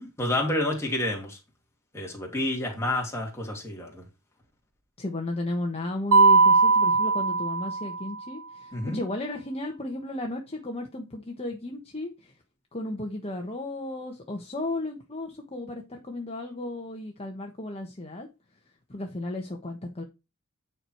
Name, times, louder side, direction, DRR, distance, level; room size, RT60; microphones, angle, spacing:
voice 1, 0.2-1.4 1.9-4.0 8.7-9.0, left 1 dB, 15° left, 2.9 m, -29 dB
voice 2, 5.0-12.4 12.7-18.3 18.9-20.0, left 2 dB, 30° left, 1.3 m, -34 dB
Mallet percussion, 6.1-8.2, right 4 dB, 85° right, 1.0 m, -20 dB
9.8 x 4.8 x 4.5 m
head